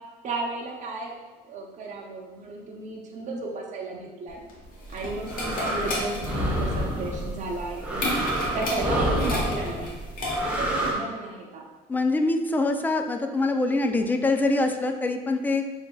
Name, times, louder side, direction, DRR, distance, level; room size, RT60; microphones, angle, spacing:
voice 1, 0.2-1.2 1.4-4.4 4.9-8.2 8.5-9.8 10.4-11.6, right 2 dB, 45° right, -1 dB, 0.7 m, -33 dB
sound 1, 4.3-10.7, left 1 dB, 55° left, 1.1 m, -33 dB
sound 2, 4.9-10.9, right 1 dB, 5° right, 0.9 m, -28 dB
voice 2, 11.9-15.6, left 2 dB, 10° left, 5 dB, 0.3 m, -24 dB
6.4 x 2.7 x 2.3 m, 1.2 s
cardioid pair, 110°, 17 cm